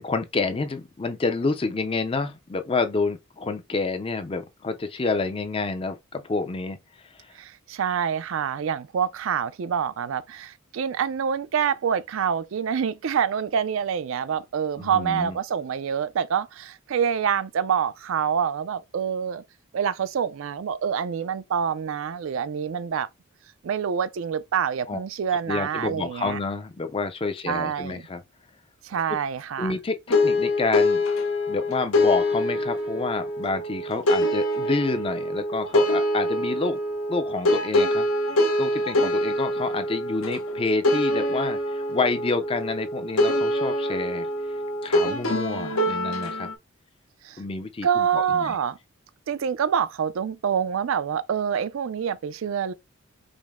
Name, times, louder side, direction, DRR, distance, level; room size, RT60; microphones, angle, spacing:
voice 1, 0.0-7.3 14.8-15.4 24.9-25.0 25.5-28.2 29.1-29.2 29.6-31.0 31.5-36.8 37.1-38.1 38.6-44.3 44.8-46.5 47.4-48.6, left 3 dB, 25° left, 0.4 m, -28 dB
voice 2, 7.4-19.4 19.7-23.1 23.6-26.4 27.4-28.0 28.8-29.7 47.2-47.4 47.8-48.8 49.3-52.7, right 7 dB, 65° right, 0.4 m, -26 dB
sound 1, 30.1-46.5, left 1 dB, 75° left, 0.7 m, -25 dB
5.1 x 2.0 x 3.5 m
head